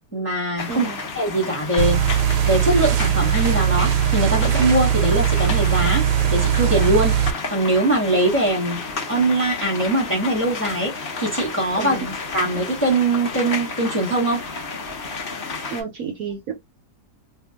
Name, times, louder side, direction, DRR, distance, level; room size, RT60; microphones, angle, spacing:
voice 1, 0.1-0.9 1.1-2.0 2.4-6.1 6.3-8.8 9.1-12.0 12.3-14.4, right 1 dB, 10° left, 1.0 m, -22 dB
sound 1, 0.6-15.8, left 4 dB, 45° left, 0.9 m, -32 dB
voice 2, 0.7-1.0 11.8-12.1 15.7-16.5, right 6 dB, 65° right, 0.9 m, -30 dB
sound 2, 1.8-7.3, right 10 dB, 85° right, 1.2 m, -20 dB
2.8 x 2.2 x 3.4 m
omnidirectional pair, 1.7 m